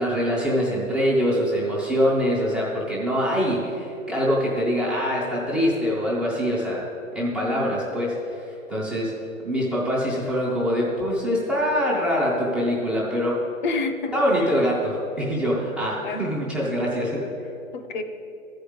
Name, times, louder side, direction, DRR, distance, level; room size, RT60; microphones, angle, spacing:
voice 1, 0.0-6.8 7.1-9.1 9.4-13.4 14.1-17.2, equal, ahead, -11 dB, 0.4 m, -24 dB
voice 2, 7.4-7.7 13.6-14.5 16.0-16.3 17.7-18.0, left 3 dB, 35° left, 7 dB, 0.8 m, -29 dB
12.5 x 5.1 x 7.8 m, 2.8 s
figure-of-eight pair, 130°, 40 cm